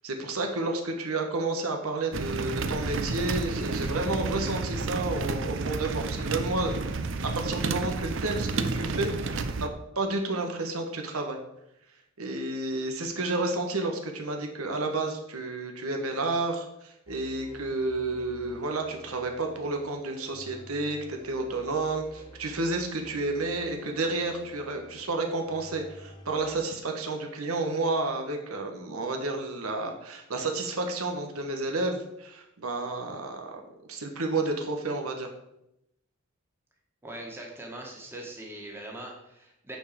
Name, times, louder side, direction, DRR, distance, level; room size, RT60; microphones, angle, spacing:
voice 1, 0.0-6.8 7.2-9.7 9.9-11.4 12.2-33.6 33.9-35.3, right 2 dB, 90° right, 3 dB, 1.4 m, -31 dB
sound 1, 2.1-9.7, right 3 dB, 60° right, 0.7 m, -31 dB
sound 2, 17.1-26.7, equal, 25° left, 1.2 m, -51 dB
voice 2, 37.0-39.8, right 1 dB, 10° right, -1 dB, 1.8 m, -41 dB
9.1 x 4.7 x 6.9 m, 0.83 s
head